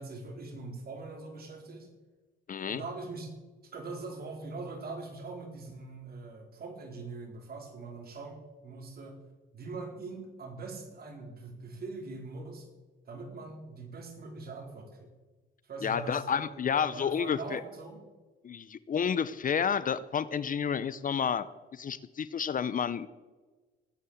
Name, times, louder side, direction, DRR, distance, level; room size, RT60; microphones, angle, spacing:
voice 1, 0.0-1.9 2.7-3.3 3.7-9.2 9.5-12.7 13.1-15.1 15.6-18.0, right 3 dB, 50° right, 2 dB, 4.4 m, -42 dB
voice 2, 2.5-2.8 15.8-17.6 18.4-23.1, left 7 dB, 45° left, 16 dB, 0.7 m, -30 dB
18.0 x 9.7 x 7.3 m, 1.3 s
cardioid pair, 90°, 20 cm